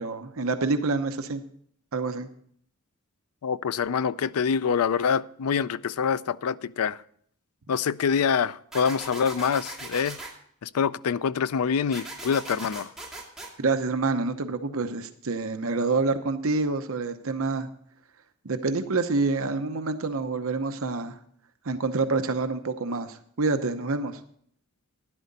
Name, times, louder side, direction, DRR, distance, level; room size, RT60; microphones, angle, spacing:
voice 1, 0.0-1.4 1.9-2.3 13.6-17.7 18.4-21.2 21.6-24.2, right 3 dB, 65° right, 0.8 m, -27 dB
voice 2, 3.4-7.0 7.7-10.2 10.6-12.9, left 6 dB, 75° left, 0.4 m, -25 dB
sound 1, 8.7-10.3 11.9-13.5, right 2 dB, ahead, 2.2 m, -39 dB
12.0 x 10.5 x 4.0 m
head